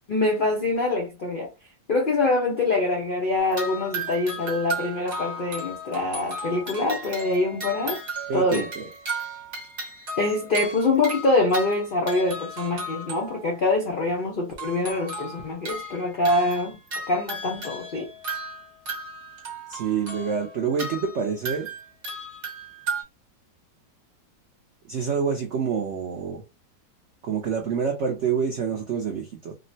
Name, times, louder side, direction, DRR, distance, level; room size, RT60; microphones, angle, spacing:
voice 1, 0.1-1.5 1.9-8.0 8.3-8.7 10.2-16.8 17.1-18.1, left 2 dB, 75° left, 0.4 m, -24 dB
sound 1, 3.4-13.6 14.5-23.0, right 2 dB, 45° right, 1.1 m, -35 dB
voice 2, 8.3-8.9 19.7-21.7 24.9-26.4 27.2-29.5, right 6 dB, 80° right, 0.6 m, -27 dB
3.6 x 2.1 x 2.6 m
omnidirectional pair, 1.9 m